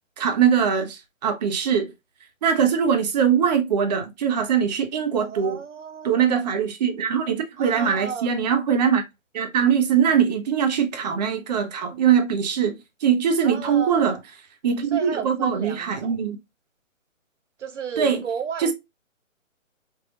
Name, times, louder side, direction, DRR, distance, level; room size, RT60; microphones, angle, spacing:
voice 1, 0.2-1.9 2.4-5.6 6.0-9.0 9.3-14.1 14.6-16.4 18.0-18.2 18.6-18.7, right 7 dB, 30° right, 0.8 m, -22 dB
voice 2, 5.2-6.2 7.6-8.3 13.4-14.2 14.9-16.1 17.6-18.7, right 6 dB, 60° right, 0.7 m, -33 dB
5.4 x 2.3 x 2.7 m
hypercardioid pair, 145°, 40 cm